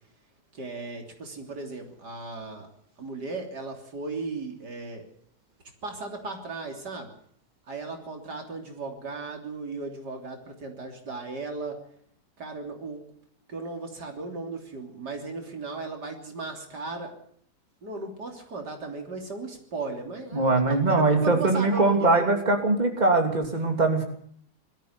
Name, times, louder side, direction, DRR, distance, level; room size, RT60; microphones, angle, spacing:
voice 1, 0.5-2.7 3.0-5.1 5.8-7.1 7.7-11.8 12.4-13.0 13.5-17.1 17.8-22.3, right 3 dB, 75° right, 3 dB, 3.9 m, -36 dB
voice 2, 20.3-24.0, right 3 dB, 25° right, 4 dB, 3.1 m, -22 dB
21.5 x 13.5 x 9.7 m, 0.65 s
omnidirectional pair, 1.8 m